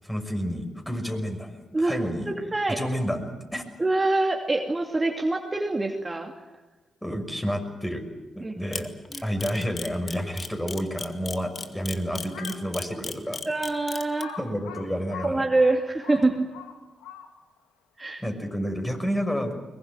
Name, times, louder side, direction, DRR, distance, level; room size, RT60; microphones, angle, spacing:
voice 1, 0.0-2.3 2.8-3.6 7.0-8.0 8.3-8.9 9.2-13.4 14.4-15.5 18.2-19.6, equal, 10° left, 5 dB, 6.0 m, -30 dB
voice 2, 1.7-2.8 3.8-6.3 8.4-8.7 9.1-9.3 13.5-14.3 15.2-16.5 18.0-18.2, right 2 dB, 25° right, 3 dB, 2.5 m, -25 dB
Camera, 8.7-14.2, left 4 dB, 45° left, 2.1 m, -34 dB
Crow, 12.2-12.7 13.3-13.4 14.2-17.6, left 8 dB, 85° left, 2.1 m, -42 dB
22.5 x 21.0 x 9.1 m, 1.2 s
hypercardioid pair, 45°, 0 cm